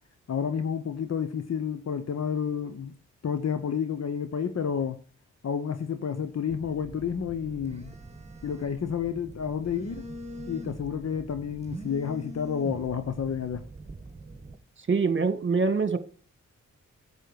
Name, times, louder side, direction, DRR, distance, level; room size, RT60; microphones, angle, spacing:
voice 1, 0.3-3.0 3.2-5.0 5.4-7.9 8.4-10.0 10.5-13.6, left 7 dB, 55° left, 1.1 m, -30 dB
Telephone, 6.5-14.6, right 1 dB, 20° right, 1.7 m, -43 dB
voice 2, 14.9-16.0, right 4 dB, 40° right, 1.6 m, -24 dB
10.5 x 8.2 x 4.7 m
cardioid pair, 55°, 30 cm